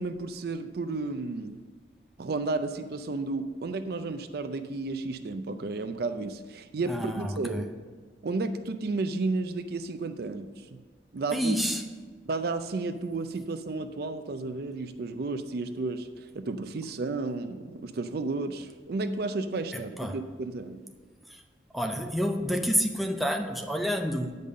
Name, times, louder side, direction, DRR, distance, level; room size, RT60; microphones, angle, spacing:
voice 1, 0.0-1.6 2.2-7.7 8.2-10.8 11.1-11.6 12.3-20.8, right 3 dB, 60° right, 9 dB, 0.5 m, -32 dB
voice 2, 6.8-7.7 11.3-11.8 19.7-20.2 21.3-21.4 21.7-24.4, equal, ahead, 4 dB, 0.5 m, -29 dB
8.4 x 5.4 x 6.4 m, 1.5 s
head